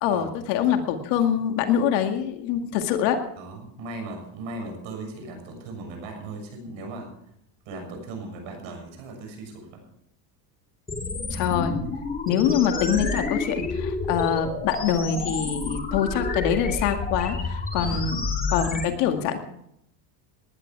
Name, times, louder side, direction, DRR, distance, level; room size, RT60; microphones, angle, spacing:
voice 1, 0.0-3.2 11.3-11.7 12.3-18.2 18.5-19.4, left 8 dB, 80° left, 6 dB, 2.2 m, -24 dB
voice 2, 3.4-7.1 7.7-9.8 17.8-18.0 18.8-19.0, right 2 dB, 65° right, 4 dB, 6.8 m, -38 dB
sound 1, 10.9-18.9, left 3 dB, 15° left, 2.6 m, -29 dB
19.0 x 11.5 x 4.8 m, 0.75 s
supercardioid pair, 105°, 50 cm